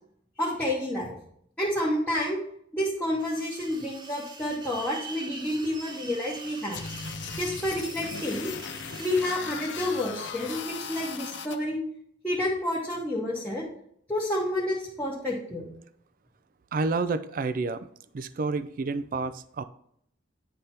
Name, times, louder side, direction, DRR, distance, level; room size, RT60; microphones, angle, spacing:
voice 1, 0.4-1.2 1.6-2.4 2.7-6.8 7.3-8.5 9.0-11.8 12.2-13.7 14.1-15.6, left 1 dB, 10° left, -6 dB, 0.9 m, -29 dB
sound 1, 3.2-9.3, right 3 dB, 25° right, 0.8 m, -43 dB
sound 2, 6.7-11.6, left 6 dB, 65° left, 0.6 m, -38 dB
voice 2, 16.7-17.9 18.1-19.6, right 3 dB, 45° right, 13 dB, 0.4 m, -29 dB
9.3 x 3.4 x 4.2 m, 0.69 s
head